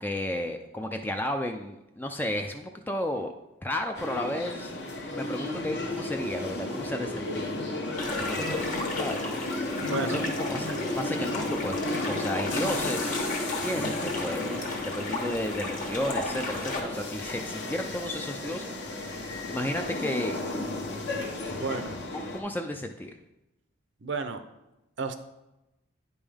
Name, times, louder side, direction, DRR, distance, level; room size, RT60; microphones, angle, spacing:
voice 1, 0.0-3.3 3.6-4.7 5.1-7.5 8.0-9.2 10.0-11.8 12.1-13.1 13.5-20.4 22.1-23.1, left 1 dB, 10° left, 5 dB, 0.3 m, -33 dB
sound 1, 3.9-22.4, left 2 dB, 60° left, 1.1 m, -33 dB
sound 2, 8.0-16.8, left 2 dB, 40° left, 1.3 m, -35 dB
voice 2, 9.8-10.3 21.5-22.0 24.0-24.4 25.0-25.2, right 3 dB, 65° right, 8 dB, 0.6 m, -32 dB
9.8 x 5.3 x 3.5 m, 0.95 s
head